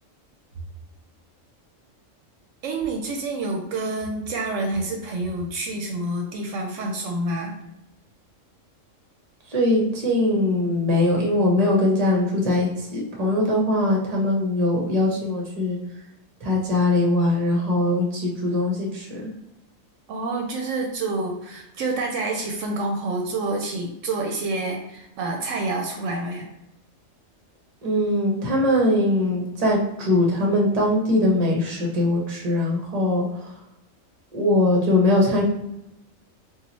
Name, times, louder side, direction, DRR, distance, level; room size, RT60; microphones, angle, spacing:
voice 1, 2.6-7.6 20.1-26.5, right 2 dB, 75° right, 2 dB, 0.9 m, -28 dB
voice 2, 9.5-15.8 16.4-19.3 27.8-33.3 34.3-35.4, left 1 dB, 35° right, -2 dB, 0.8 m, -21 dB
2.9 x 2.4 x 4.0 m, 0.84 s
omnidirectional pair, 1.4 m